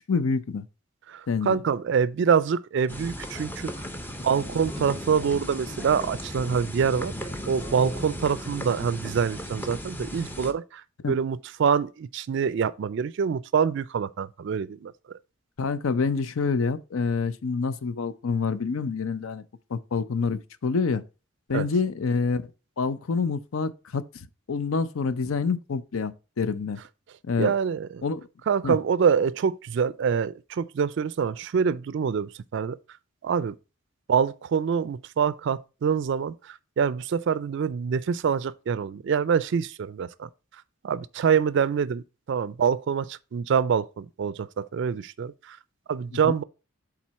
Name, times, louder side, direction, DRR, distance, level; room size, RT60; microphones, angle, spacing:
voice 1, 0.1-0.6 1.3-1.6 11.0-11.1 15.6-19.4 19.7-21.0 21.5-22.5 22.8-26.8 27.3-27.5 28.0-28.3 28.6-28.8 46.2-46.3, left 4 dB, 80° left, 0.5 m, -27 dB
voice 2, 1.1-3.9 4.2-7.1 7.5-14.9 21.5-21.7 27.4-28.0 28.5-32.8 33.2-33.6 34.1-40.3 40.8-45.6 45.9-46.4, right 6 dB, 60° right, 0.3 m, -25 dB
sound 1, 2.9-10.5, equal, 10° left, 0.6 m, -36 dB
7.5 x 3.9 x 4.1 m
head